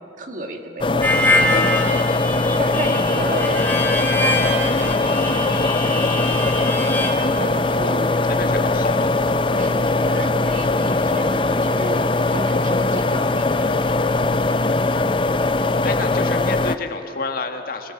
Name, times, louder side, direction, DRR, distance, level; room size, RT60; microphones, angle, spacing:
voice 1, 0.2-1.7 2.5-3.6 4.2-6.4 7.2-8.1 9.5-14.0, right 2 dB, 45° right, 4 dB, 1.9 m, -33 dB
sound 1, 0.8-16.8, left 2 dB, 25° left, 0.6 m, -20 dB
Harmonica, 1.0-7.1, left 1 dB, 10° left, 2.4 m, -24 dB
voice 2, 8.3-9.1 15.4-15.5 15.8-17.9, left 3 dB, 50° left, 5 dB, 1.7 m, -29 dB
24.5 x 21.5 x 7.2 m, 2.8 s
head